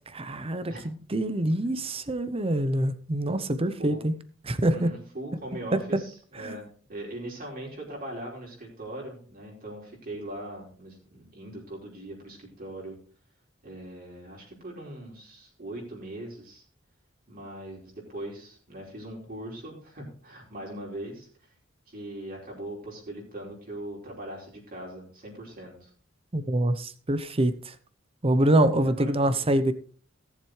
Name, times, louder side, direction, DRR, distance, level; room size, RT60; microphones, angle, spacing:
voice 1, 0.0-4.2 4.4-4.9 5.7-5.8 6.4-6.5 26.3-27.7 28.2-29.7, right 1 dB, 30° right, 0.8 m, -25 dB
voice 2, 4.7-13.0 13.6-16.6 17.3-21.3 21.9-25.9 28.7-29.4, right 1 dB, 45° right, 4.7 m, -40 dB
18.0 x 7.4 x 3.2 m
head